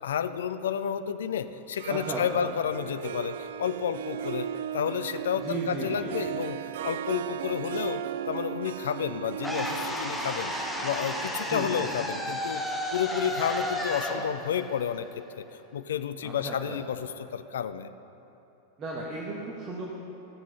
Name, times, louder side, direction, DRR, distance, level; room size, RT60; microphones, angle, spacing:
voice 1, 0.0-4.5 4.7-6.6 6.8-12.6 12.9-15.1 15.3-17.9, left 8 dB, 60° left, 11 dB, 0.4 m, -31 dB
Harp, 1.6-14.5, right 10 dB, 55° right, 0.3 m, -37 dB
voice 2, 1.9-2.5 5.4-6.1 11.5-11.9 16.2-16.8 18.8-19.9, right 3 dB, 30° right, -4 dB, 1.4 m, -35 dB
sound 1, 9.4-15.5, left 1 dB, 5° left, 1.2 m, -33 dB
14.5 x 7.5 x 5.5 m, 3.0 s
figure-of-eight pair, 90°, 0 cm